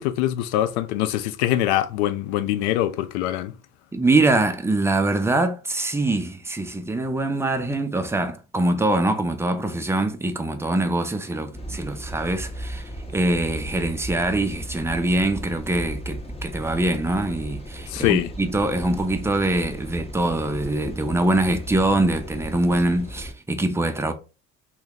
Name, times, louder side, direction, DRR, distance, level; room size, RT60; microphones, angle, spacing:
voice 1, 0.0-3.5 17.9-18.3, left 13 dB, 75° left, 0.5 m, -23 dB
voice 2, 3.9-24.1, right 2 dB, 5° right, 0.5 m, -23 dB
sound 1, 11.5-23.3, right 1 dB, 15° left, 0.9 m, -36 dB
2.7 x 2.3 x 3.5 m
hypercardioid pair, 60°, 35 cm